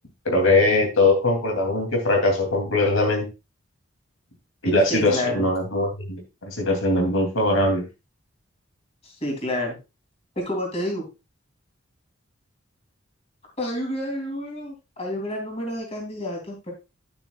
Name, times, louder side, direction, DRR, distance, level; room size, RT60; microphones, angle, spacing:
voice 1, 0.2-3.3 4.6-7.8, left 2 dB, 80° left, 2 dB, 2.9 m, -21 dB
voice 2, 4.9-5.4 9.0-9.8 10.3-11.1 13.6-16.7, left 1 dB, 30° left, 0 dB, 3.1 m, -29 dB
10.0 x 8.7 x 2.4 m, 0.26 s
head